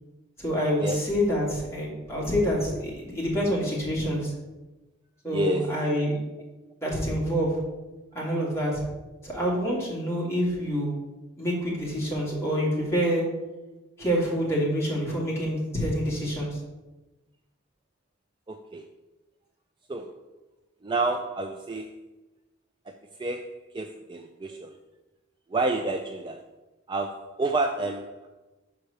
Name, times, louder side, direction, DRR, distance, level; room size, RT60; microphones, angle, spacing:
voice 1, 0.4-4.3 5.2-6.2 6.8-7.5 8.1-8.8 9.2-10.9 11.4-13.2 14.0-16.6, equal, 15° left, -6 dB, 2.2 m, -27 dB
voice 2, 5.3-6.1 18.5-18.8 19.9-20.1 20.8-21.9 22.9-24.8 25.5-26.4 26.9-28.3, right 3 dB, 25° right, 5 dB, 0.3 m, -30 dB
5.7 x 4.7 x 6.5 m, 1.1 s
head